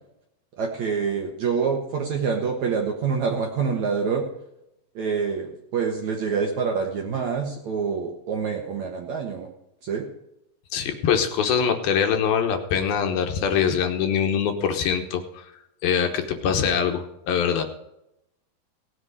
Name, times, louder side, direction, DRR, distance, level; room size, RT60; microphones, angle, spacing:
voice 1, 0.6-4.2 5.0-9.5 9.8-10.1, right 5 dB, 60° right, 1 dB, 2.1 m, -26 dB
voice 2, 10.7-15.4 15.8-17.6, left 7 dB, 70° left, 5 dB, 2.7 m, -23 dB
18.0 x 7.9 x 4.9 m, 0.83 s
omnidirectional pair, 4.8 m